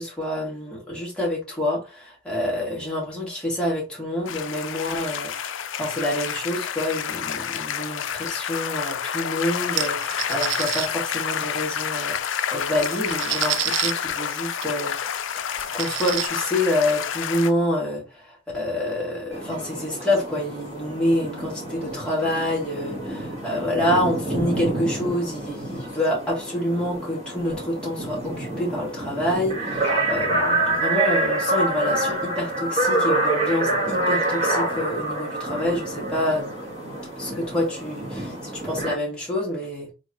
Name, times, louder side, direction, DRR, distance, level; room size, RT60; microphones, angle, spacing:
voice 1, 0.0-14.9 15.4-15.5 15.7-36.5 37.2-39.9, left 1 dB, 5° left, 1.7 m, -27 dB
sound 1, 4.3-17.5, left 8 dB, 85° left, 0.4 m, -29 dB
sound 2, 9.8-10.9 12.2-12.3 12.6-13.9 14.6-14.7 15.1-15.2 15.6-16.3, right 13 dB, 75° right, 0.3 m, -28 dB
sound 3, 19.3-39.0, right 2 dB, 35° right, 1.9 m, -27 dB
3.8 x 3.3 x 2.6 m
head